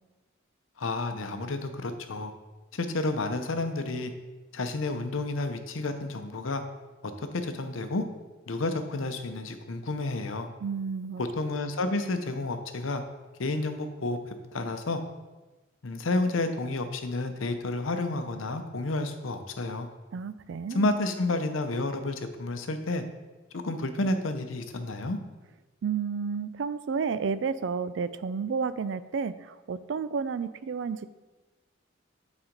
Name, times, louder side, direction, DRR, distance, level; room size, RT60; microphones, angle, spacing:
voice 1, 0.8-2.3 2.7-4.1 4.5-6.6 7.0-8.0 8.5-10.5 11.4-13.0 13.4-15.0 15.8-19.9 20.7-23.0 23.5-25.2, left 2 dB, 80° left, 7 dB, 0.7 m, -30 dB
voice 2, 10.6-11.2 20.1-20.9 25.8-31.0, right 5 dB, 65° right, 14 dB, 0.3 m, -31 dB
8.7 x 4.1 x 5.2 m, 1.2 s
head